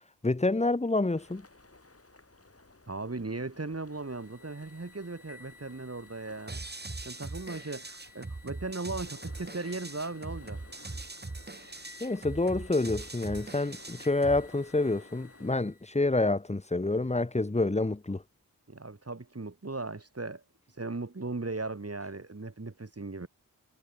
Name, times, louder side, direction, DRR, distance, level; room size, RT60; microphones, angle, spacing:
voice 1, 0.2-1.5 12.0-18.2, left 2 dB, 20° left, 1.1 m, -28 dB
sound 1, 1.1-15.5, left 2 dB, 40° left, 5.2 m, -56 dB
voice 2, 2.9-6.6 7.0-10.6 18.7-20.4 20.8-23.3, right 3 dB, 45° right, 3.3 m, -37 dB
sound 2, 3.9-16.0, left 4 dB, 70° left, 5.8 m, -56 dB
sound 3, 6.5-14.5, right 2 dB, 30° right, 1.6 m, -41 dB
wide cardioid pair, 70°, 34 cm